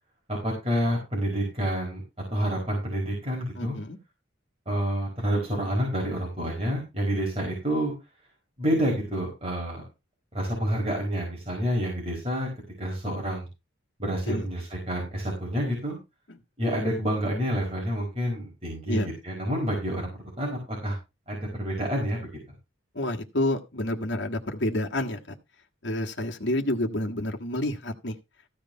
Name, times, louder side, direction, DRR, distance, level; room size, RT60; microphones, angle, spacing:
voice 1, 0.3-2.0 2.3-3.8 4.7-7.9 8.6-9.8 10.3-12.5 12.8-13.5 14.0-16.0 16.6-20.1 20.4-21.0 21.3-22.3, equal, 30° right, 4.7 m, -28 dB
voice 2, 3.5-4.0 14.3-14.5 16.3-16.4 18.9-19.1 22.9-25.2 25.8-28.2, left 1 dB, 60° left, 1.6 m, -29 dB
14.5 x 5.1 x 5.6 m
head